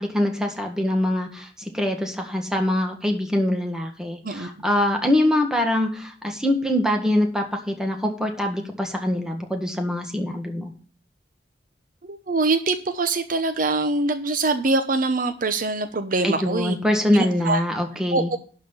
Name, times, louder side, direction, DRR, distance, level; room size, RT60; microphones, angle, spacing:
voice 1, 0.0-10.7 16.2-18.3, left 1 dB, 5° right, 3 dB, 1.7 m, -24 dB
voice 2, 12.0-16.7 17.1-17.6 18.1-18.4, right 3 dB, 50° right, 9 dB, 0.8 m, -24 dB
11.5 x 4.3 x 7.1 m, 0.42 s
head